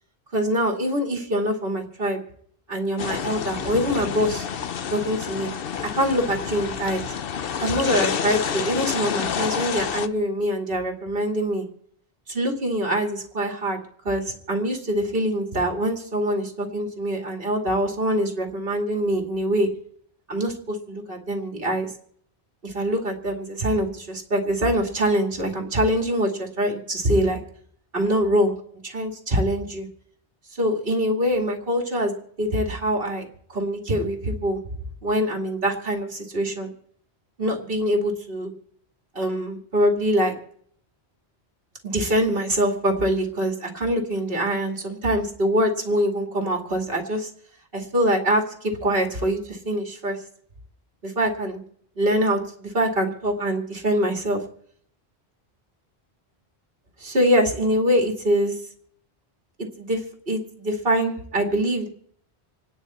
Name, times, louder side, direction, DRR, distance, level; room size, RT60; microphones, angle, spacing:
voice 1, 0.3-2.2 2.7-4.5 4.9-5.5 5.9-7.0 7.6-11.7 12.3-13.8 14.0-19.7 20.3-21.9 22.6-27.4 27.9-28.5 28.8-29.9 30.5-32.1 32.4-34.6 35.0-36.7 37.4-38.5 39.1-40.3 41.8-47.3 47.7-50.2 51.0-51.6 52.0-54.4 57.0-58.6 59.6-60.0 60.3-61.9, equal, 55° right, 2 dB, 2.6 m, -24 dB
sound 1, 3.0-10.1, left 7 dB, 60° left, 0.9 m, -29 dB
27.5 x 10.0 x 4.3 m, 0.64 s
omnidirectional pair, 1.1 m